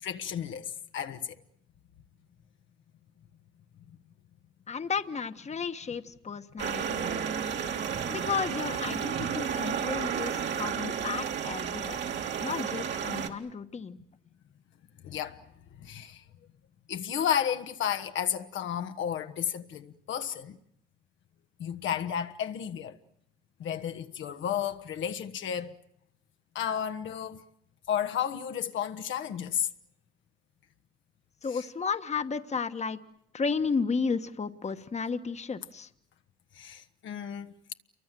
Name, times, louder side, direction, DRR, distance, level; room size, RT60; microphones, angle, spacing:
voice 1, 0.0-1.3 9.6-9.7 15.0-15.4 15.8-16.2 16.9-20.6 21.6-23.0 23.6-25.8 26.5-27.4 27.9-29.7 31.5-31.6 36.6-37.5, left 9 dB, 75° left, 1.4 m, -32 dB
voice 2, 4.7-7.0 8.1-12.0 12.4-14.0 31.4-33.0 33.3-35.9, left 5 dB, 35° left, 1.4 m, -33 dB
sound 1, 6.6-13.3, right 7 dB, 65° right, 2.5 m, -32 dB
28.5 x 24.0 x 7.6 m
cardioid pair, 90°, 20 cm